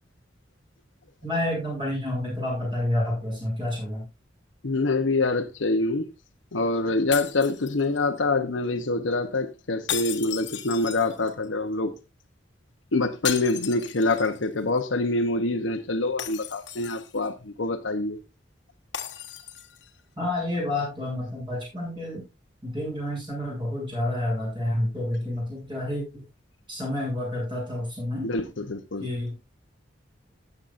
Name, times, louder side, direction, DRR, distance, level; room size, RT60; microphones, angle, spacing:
voice 1, 1.2-4.0 20.2-22.2 22.6-26.2 26.7-28.3 29.0-29.3, left 1 dB, 25° right, 7.6 m, -29 dB
voice 2, 4.6-6.1 6.5-11.9 12.9-18.2 28.2-29.1, left 2 dB, 90° left, 0.9 m, -25 dB
sound 1, 7.1-8.2 9.9-11.4 13.2-14.5 14.8-14.9 16.2-17.3 18.9-19.9, left 10 dB, 70° left, 1.3 m, -35 dB
16.0 x 8.0 x 2.6 m
head